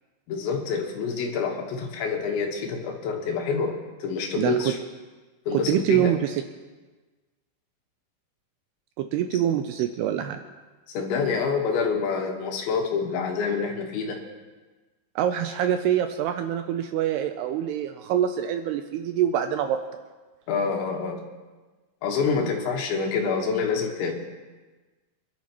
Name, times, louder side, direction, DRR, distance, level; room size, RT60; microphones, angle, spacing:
voice 1, 0.3-4.8 5.5-6.1 9.3-9.4 10.9-14.2 20.5-21.2 22.0-24.1, left 5 dB, 80° left, 2 dB, 3.7 m, -27 dB
voice 2, 4.3-4.8 5.5-6.4 9.0-10.4 15.2-19.8 22.4-22.5, right 10 dB, 90° right, 7 dB, 2.3 m, -25 dB
26.0 x 11.5 x 3.0 m, 1.3 s
omnidirectional pair, 5.2 m